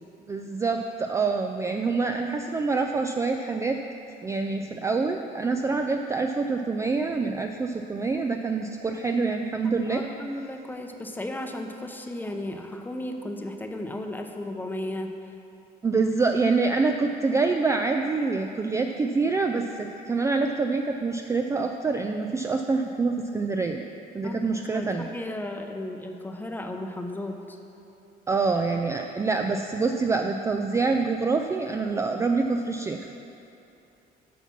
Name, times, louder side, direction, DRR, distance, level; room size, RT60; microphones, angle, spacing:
voice 1, 0.3-3.8 4.2-10.0 15.8-23.8 24.1-25.1 28.3-33.1, right 4 dB, 15° right, 4 dB, 0.3 m, -26 dB
voice 2, 9.9-15.1 24.2-27.6, left 1 dB, 10° left, 4 dB, 0.7 m, -35 dB
8.3 x 5.8 x 5.8 m, 2.8 s
cardioid pair, 110°, 17 cm